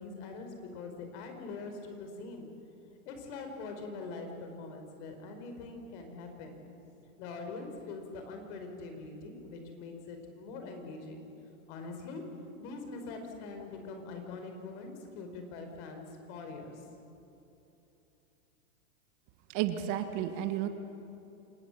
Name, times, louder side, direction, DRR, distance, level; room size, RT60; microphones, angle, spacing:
voice 1, 0.0-2.5 3.0-6.7 7.2-11.3 11.7-12.2 12.6-16.9, left 3 dB, 50° left, 5 dB, 5.0 m, -43 dB
voice 2, 19.5-20.7, right 11 dB, 40° right, 9 dB, 1.7 m, -32 dB
27.5 x 19.0 x 7.6 m, 2.9 s
hypercardioid pair, 120°, 43 cm